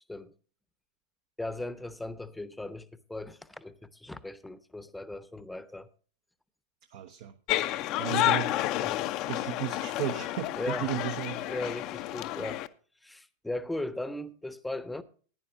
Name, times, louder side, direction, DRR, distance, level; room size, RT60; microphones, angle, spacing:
voice 1, 1.4-5.9 8.8-9.0 10.6-11.0 11.5-12.6 13.0-15.0, left 2 dB, 5° left, 0.9 m, -38 dB
voice 2, 6.9-7.3 8.0-8.6 9.3-11.4, right 13 dB, 50° right, 0.8 m, -34 dB
sound 1, 7.5-12.7, left 15 dB, 40° left, 0.7 m, -30 dB
15.5 x 10.5 x 2.6 m
figure-of-eight pair, 90°, 0 cm